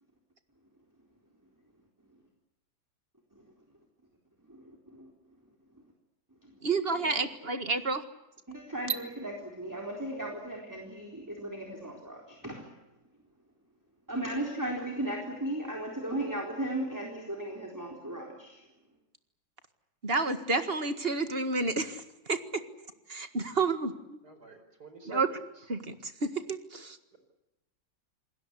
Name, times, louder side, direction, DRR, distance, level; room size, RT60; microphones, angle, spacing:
voice 1, 4.5-5.1 5.7-5.8 6.4-6.6 7.0-7.1 8.5-12.7 14.1-18.7, right 1 dB, 10° right, 0 dB, 3.9 m, -36 dB
voice 2, 6.6-8.0 20.0-22.6 23.1-24.2 25.0-25.3 25.7-27.0, right 3 dB, 30° right, 9 dB, 1.9 m, -30 dB
voice 3, 24.2-25.4, right 3 dB, 55° right, 7 dB, 5.4 m, -47 dB
28.5 x 20.5 x 8.3 m, 0.95 s
omnidirectional pair, 2.0 m